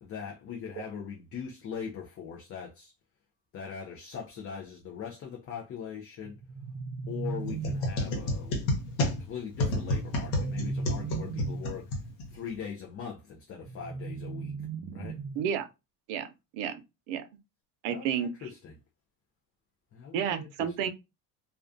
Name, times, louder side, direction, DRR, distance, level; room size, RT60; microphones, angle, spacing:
voice 1, 0.0-2.9 3.5-6.4 7.1-8.6 9.2-11.9 12.3-14.5 14.9-15.2 17.9-18.8 19.9-20.9, left 7 dB, 35° left, 0.4 m, -41 dB
sound 1, 6.2-8.2 9.9-11.8 13.6-15.6, right 4 dB, 40° right, 0.4 m, -37 dB
sound 2, 7.4-12.6, left 1 dB, 80° left, 1.0 m, -31 dB
voice 2, 15.4-15.7 16.1-16.8 17.1-17.2 17.8-18.3 20.1-20.9, right 8 dB, 85° right, 0.6 m, -31 dB
2.3 x 2.2 x 2.5 m
cardioid pair, 120°, 44 cm